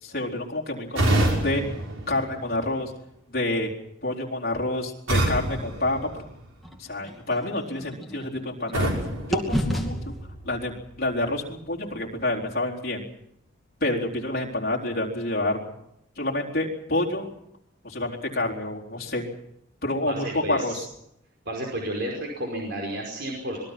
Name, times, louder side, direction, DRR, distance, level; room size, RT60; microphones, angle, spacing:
voice 1, 0.0-1.6 2.1-2.9 3.3-3.7 4.0-6.0 6.8-8.9 9.2-10.0 10.4-13.1 13.8-15.6 16.2-17.3 17.8-19.3 19.8-20.7, left 2 dB, 50° left, 0 dB, 4.1 m, -28 dB
sound 1, 0.9-2.9 5.1-6.8 8.7-10.3, right 1 dB, 90° right, 6.2 m, -27 dB
sound 2, 6.6-8.9 9.3-13.3, equal, ahead, 2.4 m, -33 dB
voice 2, 20.1-20.8 21.5-23.6, right 1 dB, 55° right, 0 dB, 5.2 m, -32 dB
26.5 x 21.0 x 6.0 m, 0.76 s
head